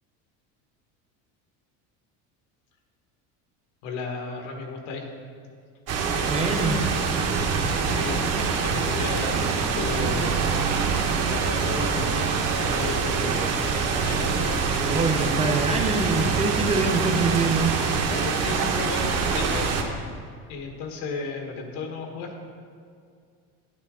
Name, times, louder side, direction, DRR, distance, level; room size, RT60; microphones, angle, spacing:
voice 1, 3.8-5.1 7.9-8.3 8.6-10.4 11.2-12.3 12.6-13.6 14.0-14.6 18.0-19.8 20.5-22.4, left 4 dB, 80° left, 3 dB, 1.6 m, -34 dB
sound 1, 5.9-19.8, right 5 dB, 40° right, 1.0 m, -25 dB
voice 2, 6.3-6.8 14.8-17.7, right 3 dB, 20° right, 3 dB, 0.9 m, -24 dB
9.7 x 8.5 x 3.8 m, 2.2 s
cardioid pair, 145°, 36 cm